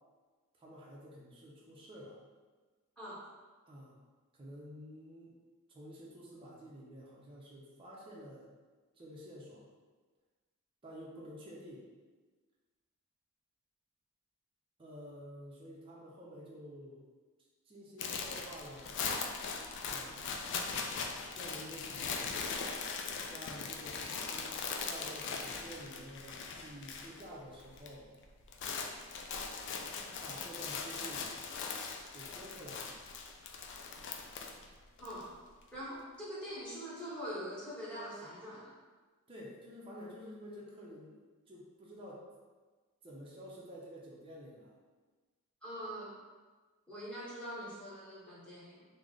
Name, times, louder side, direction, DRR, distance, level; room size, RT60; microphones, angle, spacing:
voice 1, 0.6-2.2 3.7-4.0 4.3-5.3 5.7-8.5 9.0-9.7 10.8-11.9 14.8-17.0 17.7-19.0 19.9-21.0 21.3-22.2 23.3-28.1 30.2-31.3 32.1-33.0 39.3-41.1 41.5-42.2 43.0-44.7, equal, 25° right, -5 dB, 0.5 m, -50 dB
sound 1, 18.0-27.3 27.5-27.9 28.2-35.2, left 5 dB, 55° left, 0.3 m, -40 dB
voice 2, 35.7-38.7 45.6-46.2 46.9-48.8, equal, 5° left, -9 dB, 0.9 m, -43 dB
3.2 x 2.0 x 3.7 m, 1.4 s
head